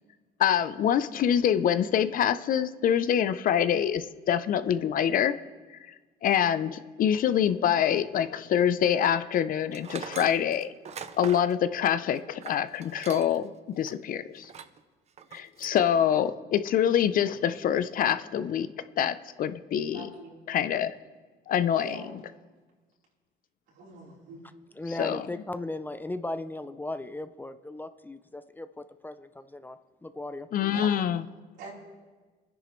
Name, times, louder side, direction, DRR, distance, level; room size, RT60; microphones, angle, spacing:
voice 1, 0.4-5.4 5.9-6.0 6.2-10.7 11.2-14.5 15.3-18.7 19.0-20.1 20.5-21.0 21.5-22.2 25.0-25.2 30.5-31.3, left 9 dB, 55° left, 13 dB, 0.6 m, -25 dB
Tools, 9.7-13.5 13.8-13.9 14.4-14.8 15.2-15.8, right 7 dB, 40° right, 0.6 m, -42 dB
voice 2, 19.9-20.4 21.7-22.1 23.8-24.4 30.7-30.9 31.6-31.7, right 3 dB, 85° right, -4 dB, 4.0 m, -43 dB
voice 3, 24.7-30.5, left 2 dB, 10° left, 11 dB, 0.5 m, -37 dB
24.0 x 10.0 x 3.2 m, 1.3 s
cardioid pair, 110°, 17 cm